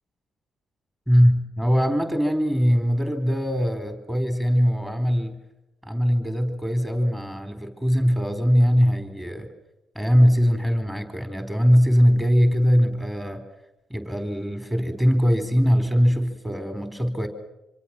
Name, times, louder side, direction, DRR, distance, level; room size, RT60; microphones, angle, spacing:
voice 1, 1.1-5.4 5.8-9.5 9.9-13.4 13.9-17.3, equal, 10° right, 8 dB, 4.1 m, -21 dB
26.0 x 25.0 x 6.1 m, 0.92 s
cardioid pair, 90°, 0 cm